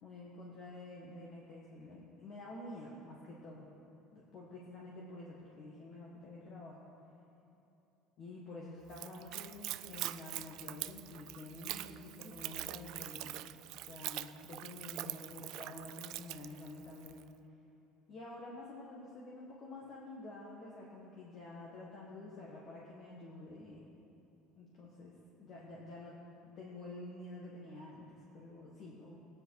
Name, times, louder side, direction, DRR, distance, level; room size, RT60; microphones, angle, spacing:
voice 1, 0.0-3.7 4.1-6.8 8.2-13.4 13.9-17.2 18.1-23.8 24.6-26.2 26.4-29.2, left 2 dB, 40° left, -4 dB, 1.7 m, -49 dB
Splash splatter / Trickle dribble, 8.9-17.2, right 16 dB, 55° right, 0.3 m, -44 dB
18.0 x 9.6 x 4.9 m, 3.0 s
cardioid pair, 160°, 0 cm